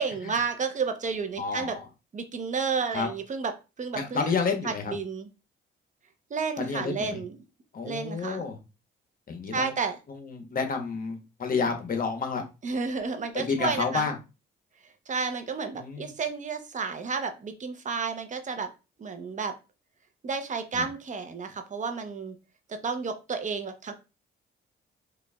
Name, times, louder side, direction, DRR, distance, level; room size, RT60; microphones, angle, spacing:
voice 1, 0.0-1.8 2.1-3.5 3.8-4.3 4.6-5.3 6.3-7.4 7.8-8.5 9.5-10.0 12.6-14.1 15.1-18.7 19.0-19.5 20.2-22.3 22.7-23.9, right 5 dB, 40° right, 7 dB, 0.7 m, -31 dB
voice 2, 1.4-1.9 2.9-3.1 3.9-4.9 6.6-7.2 7.7-8.6 9.3-9.7 10.1-12.4 13.3-14.1 15.7-16.1 20.7-20.8, left 5 dB, 45° left, 5 dB, 0.9 m, -30 dB
4.9 x 2.4 x 2.2 m, 0.29 s
cardioid pair, 90°, 20 cm